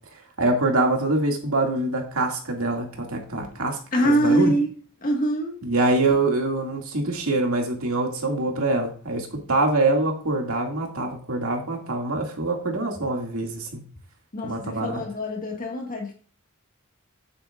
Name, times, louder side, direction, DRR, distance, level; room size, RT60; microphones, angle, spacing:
voice 1, 0.4-3.8 4.0-4.5 5.6-13.8 14.4-15.0, right 2 dB, 80° right, 1 dB, 2.3 m, -24 dB
voice 2, 3.9-4.7 5.0-5.5 14.3-16.1, right 1 dB, 40° left, 1 dB, 1.8 m, -24 dB
10.0 x 8.3 x 2.5 m, 0.42 s
head